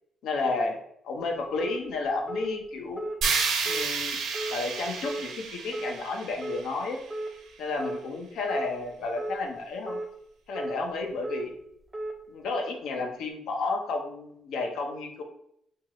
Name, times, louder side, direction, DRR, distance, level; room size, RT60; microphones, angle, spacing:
voice 1, 0.2-0.8 1.0-3.1 3.6-4.2 4.5-7.0 7.6-10.0 10.5-11.5 12.3-15.2, left 3 dB, 80° left, 3 dB, 0.7 m, -32 dB
sound 1, 1.6-1.8 2.3-2.5 3.0-3.2 3.6-3.9 4.3-4.6 5.0-5.2 5.7-5.9 6.4-6.6 7.1-7.3 7.8-8.0 8.5-8.7 9.2-9.4 9.9-10.1 10.5-10.8 11.2-11.4 11.9-12.1, right 1 dB, 15° right, 0.6 m, -34 dB
sound 2, 3.2-7.3, right 5 dB, 80° right, 0.8 m, -31 dB
4.5 x 2.4 x 3.0 m, 0.72 s
cardioid pair, 90°, 0 cm